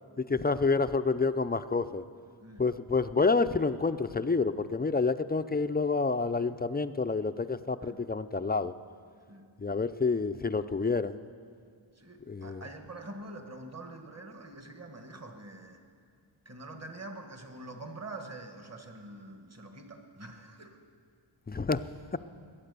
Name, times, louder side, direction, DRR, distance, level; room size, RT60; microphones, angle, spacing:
voice 1, 0.3-2.0 2.6-8.7 9.6-11.2 12.3-12.6 21.5-21.8, left 4 dB, 20° left, 11 dB, 0.4 m, -28 dB
voice 2, 12.0-15.8 16.4-20.8, right 2 dB, 30° right, 5 dB, 1.5 m, -45 dB
22.0 x 8.7 x 6.8 m, 2.1 s
wide cardioid pair, 70°, 48 cm